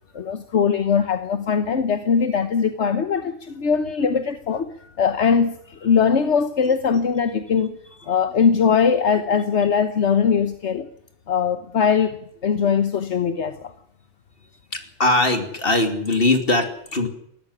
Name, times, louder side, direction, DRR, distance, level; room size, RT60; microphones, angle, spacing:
voice 1, 0.1-7.8 8.1-10.9 11.3-12.2 12.4-13.7, left 6 dB, 80° left, 1.4 m, -21 dB
voice 2, 14.7-17.1, left 2 dB, 55° left, 3.1 m, -21 dB
19.0 x 14.0 x 9.7 m
omnidirectional pair, 1.2 m